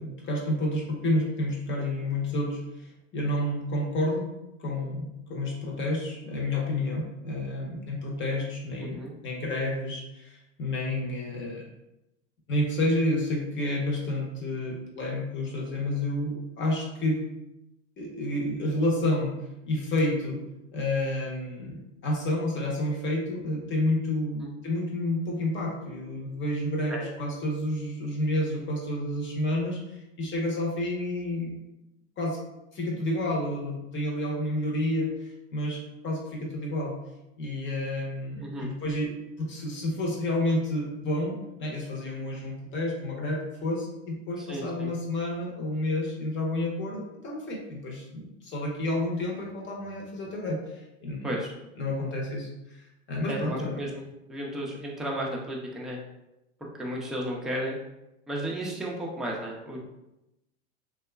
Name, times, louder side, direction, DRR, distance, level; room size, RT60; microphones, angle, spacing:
voice 1, 0.0-4.3 4.6-11.7 12.5-17.2 18.0-19.4 19.7-20.4 20.7-31.6 32.2-32.4 32.7-37.0 37.4-39.1 39.4-51.3 51.8-52.5 52.8-53.8, left 1 dB, 35° left, -1 dB, 0.8 m, -30 dB
voice 2, 8.8-9.1 24.4-24.5 26.9-27.1 38.4-38.7 44.4-44.9 51.2-51.5 53.3-56.0 56.8-57.8 58.3-59.8, equal, ahead, -3 dB, 0.4 m, -34 dB
2.8 x 2.3 x 2.2 m, 0.91 s
hypercardioid pair, 100°, 35 cm